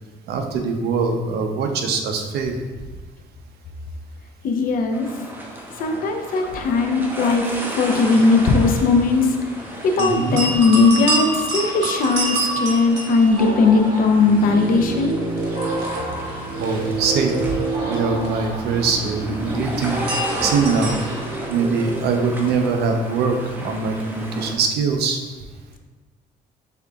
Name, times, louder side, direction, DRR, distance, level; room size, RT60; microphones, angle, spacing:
voice 1, 0.3-2.6 10.0-10.4 16.6-17.5 17.9-20.0 20.4-21.0 21.5-25.2, right 4 dB, 75° right, 4 dB, 0.6 m, -22 dB
voice 2, 4.4-5.1 5.8-7.4 7.8-9.3 9.8-15.2, left 4 dB, 55° left, 4 dB, 0.6 m, -18 dB
sound 1, 4.9-24.5, right 1 dB, 10° right, 0.8 m, -35 dB
sound 2, 10.0-14.0 14.2-21.3, right 2 dB, 90° right, 1.1 m, -28 dB
sound 3, 13.4-22.1, right 2 dB, 35° right, 1.1 m, -28 dB
5.4 x 3.7 x 2.3 m, 1.3 s
cardioid pair, 110°, 17 cm